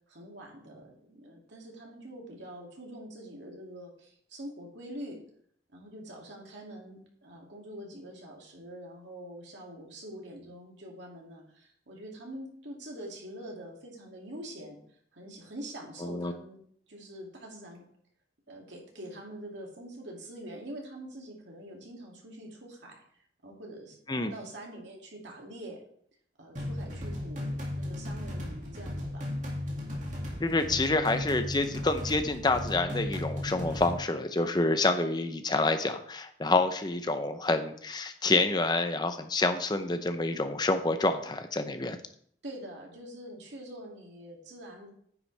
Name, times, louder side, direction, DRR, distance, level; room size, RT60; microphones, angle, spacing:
voice 1, 0.1-5.2 5.7-14.8 15.1-16.6 16.9-17.8 18.5-23.0 23.4-25.8 26.4-29.3 42.4-44.9, right 1 dB, 85° right, -1 dB, 2.5 m, -45 dB
voice 2, 16.0-16.3 24.1-24.3 30.4-42.0, left 2 dB, 25° left, 8 dB, 0.6 m, -28 dB
sound 1, 26.6-33.9, left 1 dB, 45° right, 2.2 m, -35 dB
9.6 x 7.4 x 3.3 m, 0.63 s
head